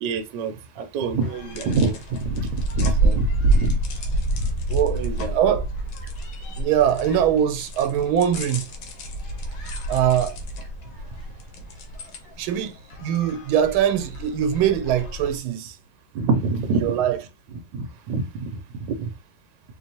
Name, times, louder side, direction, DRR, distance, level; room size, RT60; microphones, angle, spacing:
voice 1, 0.0-3.8 4.9-5.3 16.1-16.9 17.7-18.6 18.9-19.1, right 4 dB, 70° right, 1.2 m, -26 dB
sound 1, 1.2-15.4, right 1 dB, 75° left, 1.7 m, -28 dB
voice 2, 2.8-3.2 4.7-5.0 5.3-5.6 6.5-8.7 9.9-10.3 12.4-12.7 13.0-15.7 16.8-17.2, right 9 dB, 90° right, 1.4 m, -22 dB
4.1 x 2.9 x 2.8 m
omnidirectional pair, 2.2 m